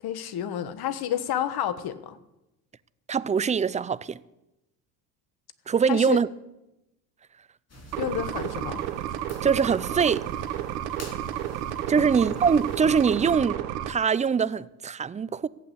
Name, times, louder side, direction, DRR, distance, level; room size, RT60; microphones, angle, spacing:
voice 1, 0.0-2.2 5.9-6.2 7.9-8.8 12.0-12.1, left 10 dB, 50° left, 1.4 m, -30 dB
voice 2, 3.1-4.2 5.7-6.3 9.4-10.2 11.9-13.6 13.9-15.5, right 6 dB, 15° right, 0.5 m, -23 dB
sound 1, 7.7-13.3, left 1 dB, 30° left, 4.0 m, -47 dB
sound 2, 7.9-13.9, right 11 dB, 90° right, 1.1 m, -32 dB
15.5 x 8.3 x 8.3 m
hypercardioid pair, 75°, 47 cm